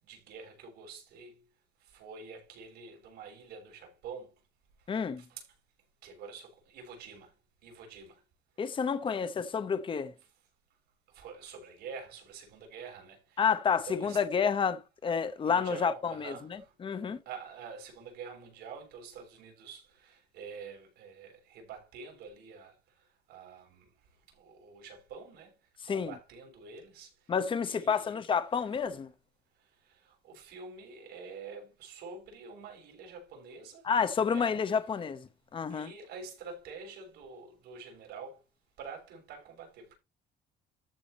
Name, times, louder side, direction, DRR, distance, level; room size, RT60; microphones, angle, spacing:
voice 1, 0.0-1.4 1.9-4.3 5.2-5.4 6.0-7.3 7.6-8.2 11.1-13.4 13.8-14.2 15.4-16.7 17.2-22.7 23.3-23.8 24.3-25.5 25.9-27.1 27.6-28.2 29.9-33.9 34.3-34.5 35.7-38.4 38.8-39.9, right 5 dB, 80° right, 6.7 m, -47 dB
voice 2, 4.9-5.2 8.6-10.1 13.4-17.2 25.8-26.1 27.3-29.1 33.8-35.9, left 6 dB, 30° left, 0.9 m, -30 dB
14.0 x 4.9 x 4.2 m
cardioid pair, 110°, 17 cm